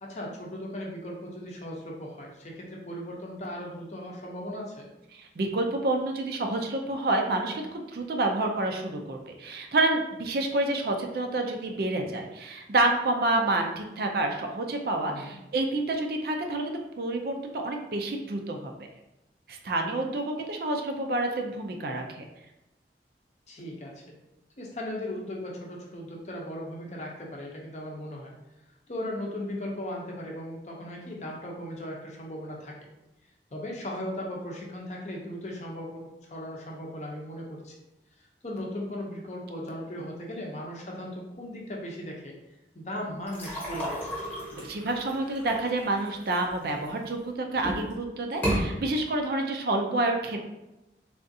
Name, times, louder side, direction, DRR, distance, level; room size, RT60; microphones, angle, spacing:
voice 1, 0.0-4.9 15.1-15.4 23.5-24.0 24.6-28.3 28.9-32.8 33.5-37.8 38.2-42.3 42.7-44.2, left 1 dB, 40° left, -1 dB, 0.6 m, -37 dB
voice 2, 5.1-18.7 19.5-22.2 44.5-50.4, right 2 dB, 55° right, 3 dB, 0.4 m, -28 dB
sound 1, 43.3-47.1 47.5-47.9 48.3-48.6, equal, 10° left, 0.9 m, -33 dB
3.6 x 2.4 x 2.6 m, 0.95 s
head